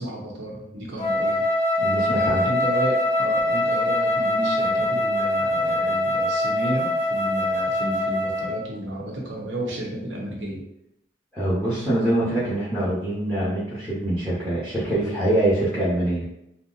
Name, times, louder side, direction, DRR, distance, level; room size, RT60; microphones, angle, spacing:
voice 1, 0.0-1.4 2.1-10.6, right 1 dB, 80° right, -2 dB, 0.8 m, -32 dB
Wind instrument woodwind instrument, 1.0-8.6, left 1 dB, 40° left, 0.7 m, -23 dB
voice 2, 1.8-2.4 11.3-16.4, right 1 dB, ahead, -11 dB, 0.8 m, -24 dB
2.7 x 2.0 x 3.8 m, 0.82 s
head